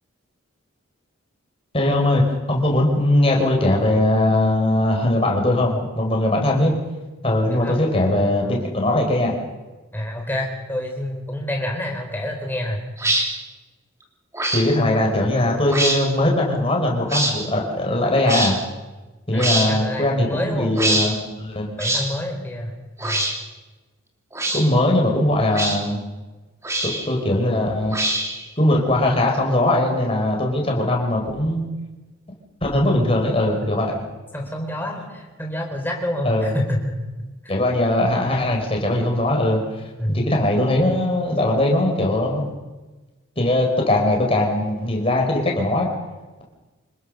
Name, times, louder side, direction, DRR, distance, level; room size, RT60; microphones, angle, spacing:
voice 1, 1.7-2.2 2.5-6.7 7.2-9.3 14.5-18.6 19.3-21.7 24.5-26.0 26.8-28.0 28.6-31.6 32.6-33.9 36.2-36.5 37.5-39.6 40.1-42.5 43.4-45.9, left 1 dB, 25° left, 0 dB, 4.8 m, -20 dB
voice 2, 7.5-8.6 9.9-12.8 19.3-21.0 21.8-22.8 23.0-23.3 34.3-37.0 37.4-37.5 40.0-40.2, left 1 dB, 10° left, 1 dB, 4.1 m, -28 dB
sound 1, 13.0-13.3 14.3-14.7 15.7-16.0 17.1-17.3 18.3-18.5 19.4-19.7 20.7-21.1 21.8-22.1 23.0-23.3 24.3-24.6 25.5-25.8 26.6-27.1 27.9-28.4, right 1 dB, 15° right, 2.8 m, -23 dB
26.5 x 20.5 x 6.6 m, 1.2 s
head